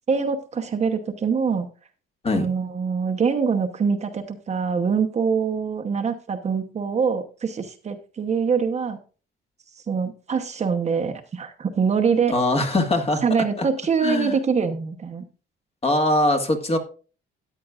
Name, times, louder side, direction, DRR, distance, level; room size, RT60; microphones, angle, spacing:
voice 1, 0.1-1.7 2.3-9.0 9.9-12.3 13.2-15.2, right 6 dB, 35° right, 4 dB, 0.9 m, -24 dB
voice 2, 12.3-13.2 13.6-13.7 14.0-14.4 15.8-16.8, left 2 dB, 30° left, 4 dB, 1.7 m, -21 dB
14.0 x 9.3 x 2.4 m, 0.36 s
cardioid pair, 150°, 20 cm